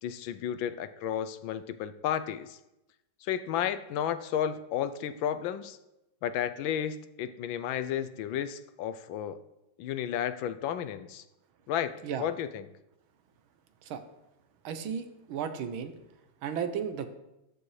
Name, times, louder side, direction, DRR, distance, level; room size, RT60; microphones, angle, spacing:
voice 1, 0.0-2.6 3.2-5.8 6.2-9.4 9.8-11.2 11.7-12.7, left 9 dB, 80° left, 12 dB, 1.3 m, -32 dB
voice 2, 14.6-15.9 16.4-17.1, right 7 dB, 85° right, 9 dB, 1.7 m, -34 dB
13.5 x 9.9 x 3.2 m, 0.93 s
omnidirectional pair, 2.2 m